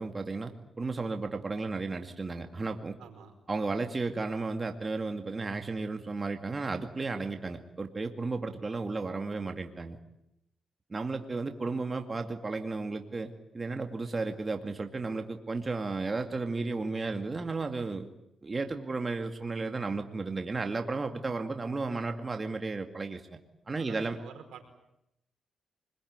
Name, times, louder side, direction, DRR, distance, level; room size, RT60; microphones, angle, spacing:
voice 1, 0.0-3.0 3.5-10.0 10.9-18.1 18.4-23.4 23.7-24.2, right 3 dB, 30° right, 5 dB, 2.3 m, -34 dB
voice 2, 3.0-3.3 23.8-24.6, right 7 dB, 85° right, 5 dB, 5.0 m, -48 dB
25.5 x 22.5 x 9.6 m, 0.83 s
cardioid pair, 85°, 0 cm